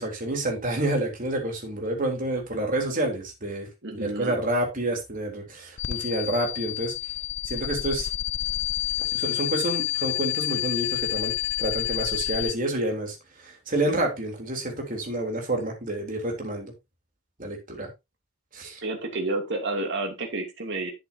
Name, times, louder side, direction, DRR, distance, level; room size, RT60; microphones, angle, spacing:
voice 1, 0.0-6.9 7.5-8.1 9.1-11.3 11.6-16.7 17.4-17.9 18.5-18.8, right 1 dB, 40° right, 3.5 m, -29 dB
voice 2, 3.8-4.4 18.8-20.9, right 2 dB, 55° right, 2.8 m, -30 dB
sound 1, 5.8-12.5, left 15 dB, 60° left, 0.4 m, -29 dB
11.5 x 7.9 x 2.8 m
head